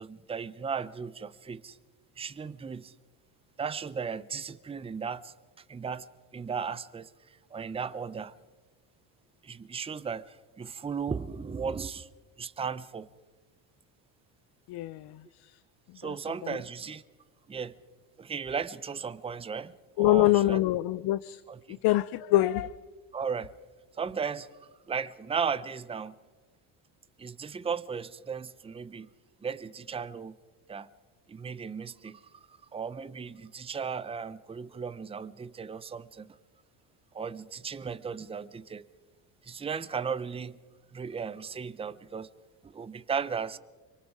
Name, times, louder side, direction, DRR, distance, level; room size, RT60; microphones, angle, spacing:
voice 1, 0.0-1.8 2.2-2.9 3.6-5.3 5.7-6.1 6.3-7.1 7.5-8.3 9.4-12.1 12.4-13.1 16.0-17.0 17.5-17.7 18.2-20.6 21.5-21.8 23.1-23.5 24.0-24.5 24.9-26.1 27.2-29.1 29.4-30.3 30.7-30.9 31.3-32.2 32.5-36.4 37.1-38.9 39.4-40.6 40.9-42.3 42.6-43.6, right 6 dB, 15° right, 0.7 m, -36 dB
voice 2, 14.7-15.6 15.9-16.2 16.4-16.6 20.0-21.4 21.7-22.8, left 16 dB, 60° left, 0.7 m, -26 dB
26.5 x 24.0 x 4.8 m
cardioid pair, 110°, 43 cm